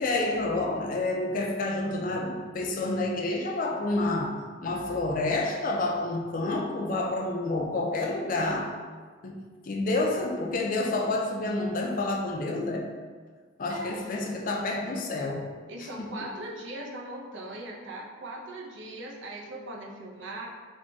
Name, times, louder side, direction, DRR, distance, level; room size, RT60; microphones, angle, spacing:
voice 1, 0.0-8.8 9.2-12.9 13.6-15.5 16.0-16.3, left 2 dB, 45° left, 1 dB, 0.4 m, -29 dB
voice 2, 13.7-14.1 15.7-20.5, right 1 dB, 70° right, -1 dB, 0.6 m, -39 dB
3.6 x 2.2 x 3.8 m, 1.5 s
head